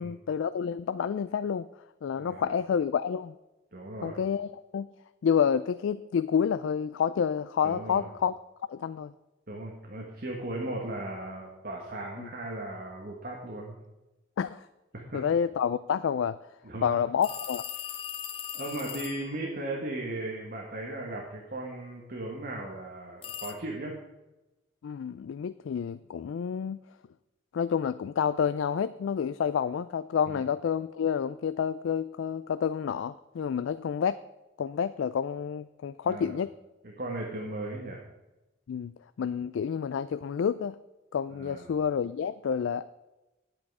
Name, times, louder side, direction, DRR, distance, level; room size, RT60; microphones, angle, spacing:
voice 1, 0.0-1.7 2.0-3.3 4.0-4.9 5.2-8.3 8.7-9.1 12.2-12.3 14.4-14.7 15.1-16.4 16.8-17.6 24.8-26.8 27.5-34.2 34.6-36.5 38.7-38.9 39.2-40.8 41.1-42.8, left 7 dB, 75° left, 14 dB, 0.3 m, -29 dB
voice 2, 2.2-2.5 3.7-4.2 7.6-8.1 9.5-13.7 14.9-15.2 16.6-17.0 18.5-23.9 30.3-30.4 36.0-36.3 36.8-38.0 41.4-41.7, right 1 dB, 50° right, -1 dB, 1.6 m, -37 dB
sound 1, 17.2-19.3 23.2-23.5, left 9 dB, 30° left, 0.6 m, -38 dB
10.5 x 8.6 x 4.8 m, 1.0 s
head